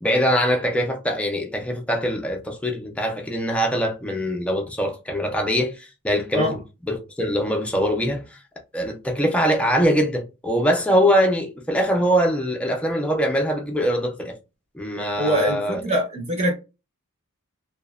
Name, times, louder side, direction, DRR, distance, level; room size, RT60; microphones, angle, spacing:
voice 1, 0.0-6.6 6.9-8.2 8.7-14.3 14.7-15.8, equal, 5° left, 0.4 m, -22 dB
voice 2, 15.2-16.5, equal, 30° right, 0.7 m, -23 dB
2.9 x 2.1 x 2.3 m
head